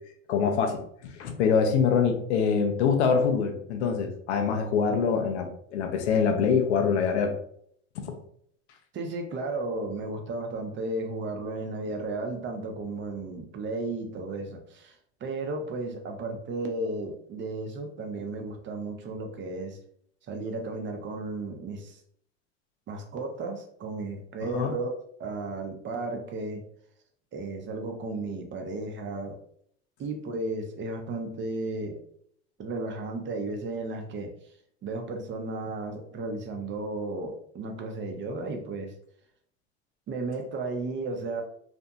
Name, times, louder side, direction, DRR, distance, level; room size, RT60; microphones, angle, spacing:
voice 1, 0.3-7.3 8.0-8.1 24.5-24.7, left 6 dB, 80° left, 5 dB, 0.6 m, -25 dB
voice 2, 8.9-15.0 15.2-19.8 20.3-22.0 22.9-26.6 27.3-29.4 30.0-32.0 32.6-34.3 34.8-38.9 40.1-41.4, right 2 dB, 35° right, 4 dB, 0.7 m, -34 dB
2.6 x 2.5 x 2.2 m, 0.65 s
hypercardioid pair, 80°, 33 cm